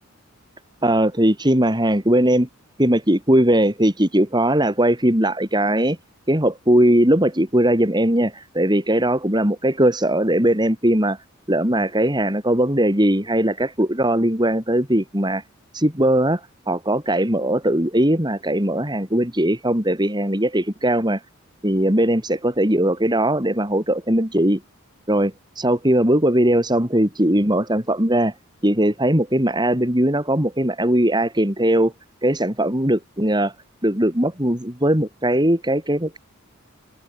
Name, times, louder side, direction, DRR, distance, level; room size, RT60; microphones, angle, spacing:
voice 1, 0.8-2.5 2.8-6.0 6.3-11.2 11.5-15.4 15.7-21.2 21.6-24.6 25.1-28.3 28.6-31.9 32.2-33.5 33.8-36.2, right 1 dB, 20° right, 4.8 m, -19 dB
head